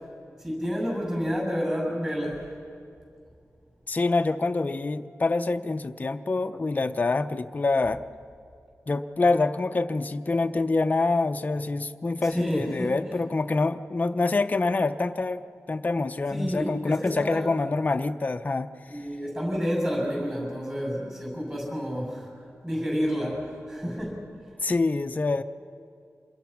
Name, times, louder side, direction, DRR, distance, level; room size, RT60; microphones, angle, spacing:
voice 1, 0.4-2.5 12.2-13.2 16.3-17.4 18.9-22.3 22.6-24.2, equal, 15° right, -2 dB, 8.0 m, -30 dB
voice 2, 3.9-8.0 8.9-18.7 24.6-25.4, left 3 dB, 35° left, 7 dB, 0.6 m, -26 dB
27.0 x 21.5 x 5.9 m, 2.3 s
wide cardioid pair, 135°, 5 cm